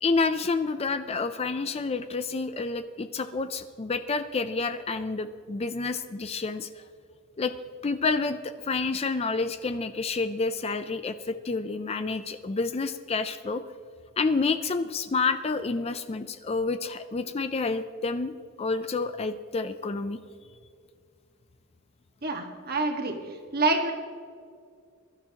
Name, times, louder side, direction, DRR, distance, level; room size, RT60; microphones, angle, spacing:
voice 1, 0.0-6.7 7.4-7.5 7.8-13.6 14.2-18.3 18.6-20.2, left 4 dB, 30° left, 11 dB, 0.4 m, -29 dB
voice 2, 22.2-23.2 23.5-23.9, right 3 dB, 45° right, 3 dB, 1.6 m, -26 dB
22.5 x 12.0 x 2.9 m, 2.2 s
head